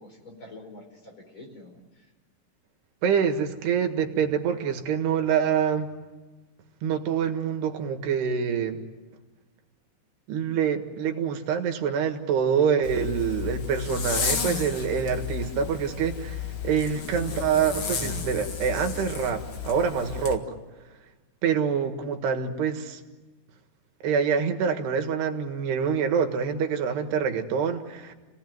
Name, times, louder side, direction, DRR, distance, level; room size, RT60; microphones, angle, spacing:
voice 1, 0.0-2.1, left 2 dB, 30° left, 2 dB, 5.2 m, -47 dB
voice 2, 3.0-5.9 6.8-8.8 10.3-20.4 21.4-23.0 24.0-28.2, right 7 dB, 80° right, 6 dB, 3.7 m, -26 dB
Zipper (clothing), 12.8-20.4, left 7 dB, 45° left, 1.8 m, -33 dB
30.0 x 18.5 x 9.3 m, 1.2 s
omnidirectional pair, 4.6 m